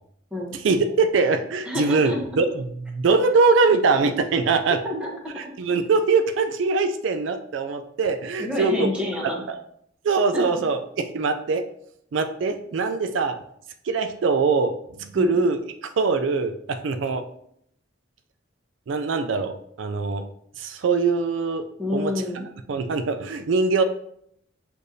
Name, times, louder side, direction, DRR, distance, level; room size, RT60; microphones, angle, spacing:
voice 1, 0.5-5.0 5.4-8.9 9.2-9.6 10.0-10.8 11.1-11.6 12.1-13.4 13.8-17.2 18.9-20.3 20.6-21.6 21.9-22.1 22.7-23.8, right 4 dB, 75° right, 7 dB, 0.4 m, -22 dB
voice 2, 1.7-2.2 4.8-5.5 8.4-9.4 10.3-10.4 15.1-15.4 21.8-22.5, left 1 dB, 5° right, -2 dB, 0.8 m, -29 dB
6.3 x 2.6 x 2.7 m, 0.69 s
head